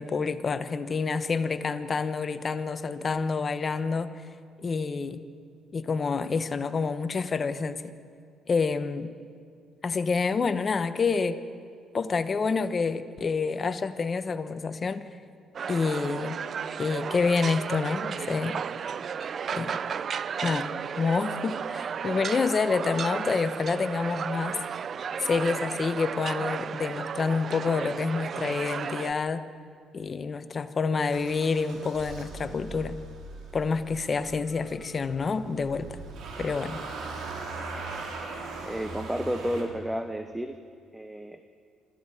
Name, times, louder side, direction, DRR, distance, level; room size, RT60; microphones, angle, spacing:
voice 1, 0.0-4.1 4.6-5.2 5.7-7.9 8.5-9.1 9.8-11.4 11.9-15.1 15.7-16.4 16.8-18.6 19.5-19.8 20.4-20.7 21.0-24.6 25.2-29.4 29.9-33.0 33.5-36.0 36.4-36.8, left 4 dB, 40° left, 11 dB, 1.1 m, -28 dB
sound 1, 15.5-29.1, right 7 dB, 50° right, 0.5 m, -33 dB
Motor vehicle (road) / Engine starting, 31.1-39.6, right 3 dB, 70° right, 4.1 m, -40 dB
voice 2, 38.6-40.6 40.9-41.4, equal, 5° right, 8 dB, 1.0 m, -31 dB
26.0 x 14.5 x 7.7 m, 2.2 s
cardioid pair, 85°, 0 cm